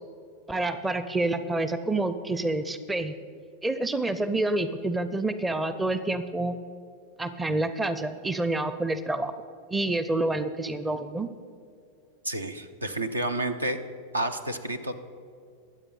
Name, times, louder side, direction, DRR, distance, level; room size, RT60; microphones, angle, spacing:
voice 1, 0.5-3.1 3.6-6.6 7.2-9.3 9.7-11.3, right 2 dB, 10° right, 11 dB, 0.5 m, -28 dB
voice 2, 12.2-13.8 14.1-14.9, right 1 dB, 80° right, 9 dB, 0.8 m, -30 dB
22.5 x 7.9 x 3.9 m, 2.4 s
figure-of-eight pair, 90°, 0 cm